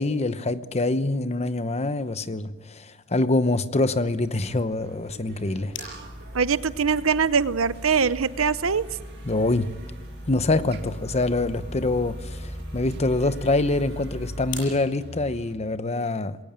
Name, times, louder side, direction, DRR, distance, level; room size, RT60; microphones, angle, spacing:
voice 1, 0.0-5.8 9.2-9.7 10.3-16.4, left 2 dB, 35° left, 12 dB, 0.9 m, -25 dB
sound 1, 4.0-15.6, right 1 dB, 55° right, 2.4 m, -44 dB
sound 2, 5.2-14.8, left 1 dB, 65° left, 7.5 m, -39 dB
voice 2, 6.3-8.8, right 6 dB, 80° right, 15 dB, 0.8 m, -22 dB
21.5 x 18.0 x 8.9 m, 1.2 s
head